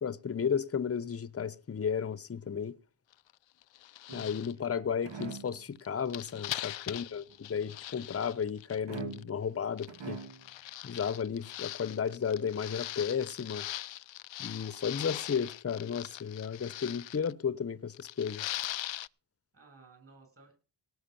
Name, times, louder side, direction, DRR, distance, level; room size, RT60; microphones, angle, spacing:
voice 1, 0.0-2.7 4.1-10.2 10.8-13.7 14.4-18.5, left 7 dB, 30° left, 0.8 m, -33 dB
sound 1, 3.1-3.3 3.6-4.5 5.1-9.2 9.8-17.3 17.9-19.1, left 14 dB, 90° left, 0.5 m, -41 dB
sound 2, 4.1-4.6 5.0-5.6 8.9-9.5 9.9-10.5, right 5 dB, 75° right, 2.3 m, -42 dB
voice 2, 6.9-7.4 19.5-20.5, right 3 dB, 30° right, 7.8 m, -58 dB
18.0 x 6.4 x 6.9 m
wide cardioid pair, 115°, 44 cm